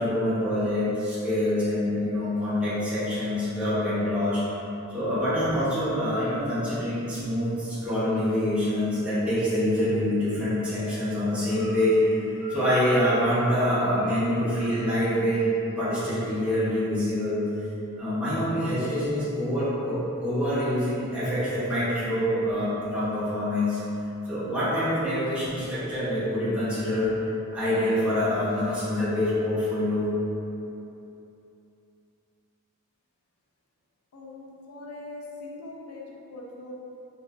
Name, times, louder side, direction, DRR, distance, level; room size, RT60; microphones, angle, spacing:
voice 1, 0.0-4.4 4.9-15.5 15.8-17.4 18.0-23.8 24.3-27.1 27.5-30.1, left 1 dB, 5° right, -13 dB, 0.6 m, -25 dB
voice 2, 34.1-36.7, left 2 dB, 75° left, -3 dB, 0.4 m, -41 dB
2.7 x 2.1 x 2.2 m, 2.8 s
head